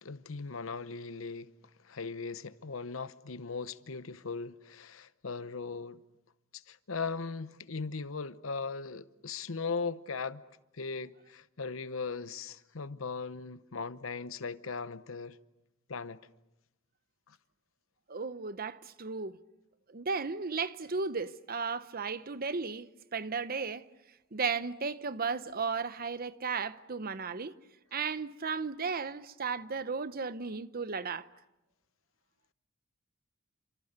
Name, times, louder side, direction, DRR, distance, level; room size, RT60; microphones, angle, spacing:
voice 1, 0.0-1.5 1.8-6.0 6.5-10.4 10.7-15.4 15.9-16.2 17.3-17.4, left 4 dB, 80° left, 0.9 m, -38 dB
voice 2, 18.1-19.4 19.9-23.8 24.3-27.6 27.9-31.3, right 5 dB, 45° right, 0.9 m, -35 dB
29.5 x 26.5 x 6.8 m
head